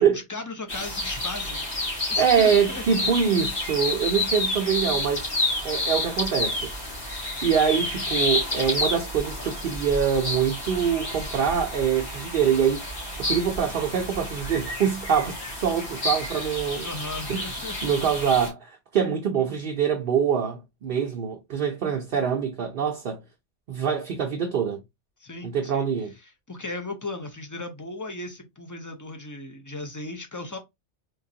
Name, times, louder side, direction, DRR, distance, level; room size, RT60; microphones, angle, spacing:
voice 1, 0.0-1.6 2.1-3.1 16.8-17.8 25.2-25.9 26.2-30.6, left 2 dB, 20° left, 0.6 m, -36 dB
sound 1, 0.7-18.5, left 2 dB, 50° left, 1.7 m, -30 dB
voice 2, 2.2-5.3 5.6-6.7 7.4-12.8 13.2-16.9 17.3-17.4 17.8-23.2 23.7-24.8 25.4-26.1, right 7 dB, 55° right, 0.7 m, -24 dB
3.8 x 3.0 x 2.7 m
omnidirectional pair, 1.2 m